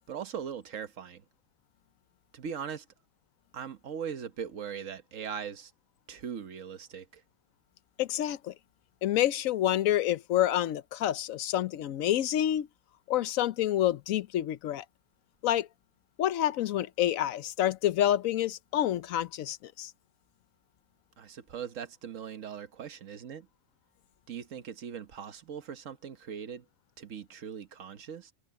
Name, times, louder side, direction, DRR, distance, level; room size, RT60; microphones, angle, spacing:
voice 1, 0.1-1.2 2.3-2.9 3.5-5.7 6.1-7.2 21.2-23.5 24.3-26.7 27.0-28.3, right 7 dB, 75° right, 1.4 m, -40 dB
voice 2, 8.0-8.5 9.0-12.7 13.1-14.8 15.4-15.7 16.2-19.9, left 12 dB, 85° left, 1.1 m, -28 dB
omnidirectional pair, 1.4 m